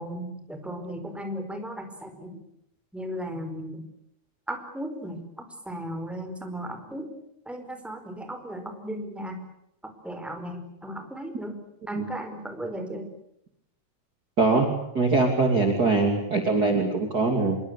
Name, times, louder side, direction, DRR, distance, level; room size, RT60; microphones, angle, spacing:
voice 1, 0.0-2.4 2.9-3.8 4.5-7.1 7.5-9.4 9.8-11.6 11.9-13.1, equal, ahead, 6 dB, 4.5 m, -36 dB
voice 2, 14.4-17.6, right 3 dB, 30° right, 4 dB, 3.1 m, -23 dB
26.5 x 23.0 x 8.4 m, 0.78 s
omnidirectional pair, 4.0 m